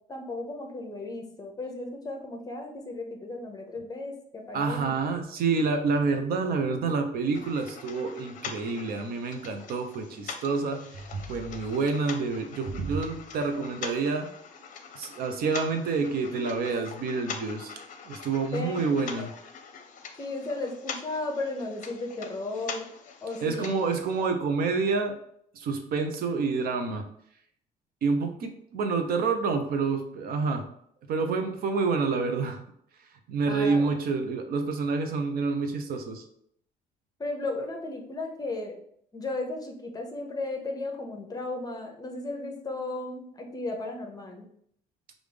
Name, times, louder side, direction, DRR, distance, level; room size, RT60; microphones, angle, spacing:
voice 1, 0.1-4.9 18.5-19.3 20.2-22.9 23.2-23.9 33.4-33.9 37.2-38.7 39.1-44.5, left 2 dB, 20° left, 2 dB, 0.9 m, -35 dB
voice 2, 4.5-14.3 14.9-19.3 23.4-25.1 25.5-27.0 28.0-30.6 31.1-32.6 33.3-36.2, right 4 dB, 60° right, 6 dB, 0.8 m, -28 dB
sound 1, 7.3-24.3, left 6 dB, 50° left, 0.7 m, -43 dB
5.1 x 2.6 x 3.4 m, 0.67 s
cardioid pair, 110°, 17 cm